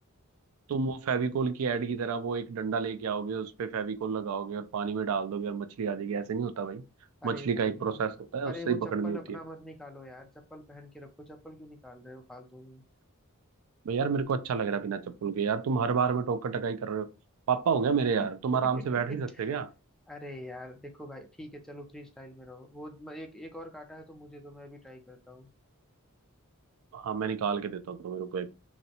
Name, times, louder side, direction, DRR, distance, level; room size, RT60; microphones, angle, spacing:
voice 1, 0.7-6.8 7.2-9.2 13.9-17.1 17.5-19.7 26.9-28.5, right 6 dB, 75° right, 0.4 m, -30 dB
voice 2, 7.2-8.0 8.4-12.8 18.2-18.3 18.7-19.5 20.1-25.5, left 1 dB, ahead, 0.4 m, -45 dB
2.6 x 2.0 x 2.7 m
head